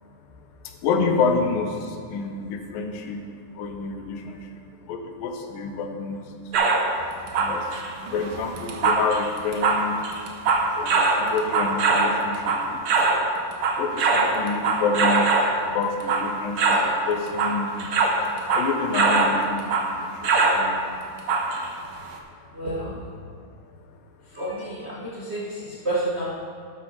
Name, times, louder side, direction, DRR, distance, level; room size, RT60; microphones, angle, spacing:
voice 1, 0.8-1.7 2.1-3.2 3.6-4.4 4.9-6.2 7.4-7.6 8.1-9.9 10.7-12.8 13.8-15.3 15.6-17.9 18.5-20.1 20.4-20.8, left 4 dB, 90° left, 4 dB, 2.6 m, -28 dB
sound 1, 6.5-6.9 7.3-13.2 13.5-15.5 16.0-16.3 16.6-16.9 17.3-19.4 19.7-19.9 20.2-20.6 21.3-21.7 22.1-22.2, right 3 dB, 90° right, 1.2 m, -22 dB
voice 2, 22.5-23.0 24.3-26.3, right 1 dB, 40° right, -8 dB, 0.9 m, -30 dB
12.0 x 6.2 x 5.6 m, 2.2 s
omnidirectional pair, 3.8 m